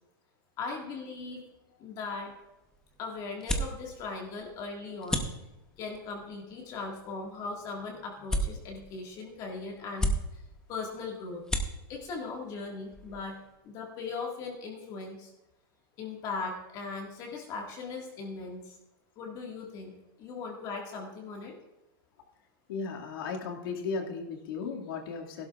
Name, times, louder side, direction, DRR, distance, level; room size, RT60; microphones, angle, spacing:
voice 1, 0.6-1.4 1.8-2.3 3.0-5.2 5.8-10.4 10.7-11.4 11.9-13.4 13.6-15.3 16.0-18.8 19.2-19.9 20.2-21.6, left 4 dB, 30° left, 0 dB, 1.8 m, -39 dB
sound 1, 2.0-13.6, equal, 5° left, 0.8 m, -37 dB
voice 2, 22.7-25.5, left 5 dB, 70° left, 0 dB, 2.1 m, -35 dB
16.0 x 12.0 x 2.4 m, 0.99 s
supercardioid pair, 155°, 12 cm